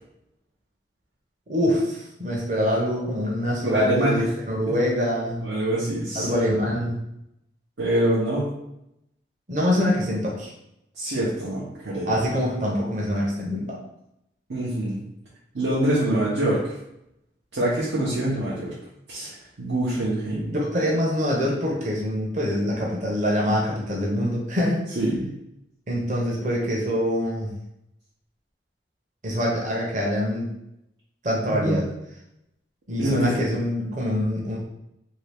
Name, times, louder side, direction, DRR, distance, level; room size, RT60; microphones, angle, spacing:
voice 1, 1.5-5.5 6.2-7.0 9.5-10.5 12.0-13.8 20.5-24.8 25.9-27.5 29.2-30.5 31.2-31.8 32.9-34.6, equal, 45° right, -3 dB, 0.7 m, -25 dB
voice 2, 3.6-4.2 4.7-4.8 5.4-6.4 7.8-8.5 10.9-12.2 14.5-15.0 15.5-16.7 17.5-18.7 19.1-20.6 25.0-25.3 31.5-31.8 33.0-33.4, right 1 dB, 90° right, -8 dB, 0.8 m, -25 dB
2.8 x 2.8 x 3.3 m, 0.82 s
head